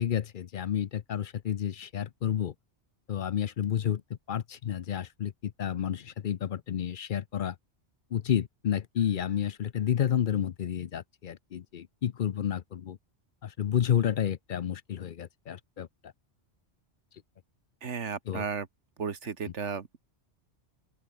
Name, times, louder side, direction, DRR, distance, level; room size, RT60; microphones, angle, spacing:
voice 1, 0.0-2.5 3.1-7.6 8.1-13.0 13.4-16.1 18.3-18.4, left 9 dB, 55° left, 0.7 m, -30 dB
voice 2, 17.8-18.7 19.0-20.0, right 6 dB, 90° right, 1.8 m, -34 dB
open air
omnidirectional pair, 1.2 m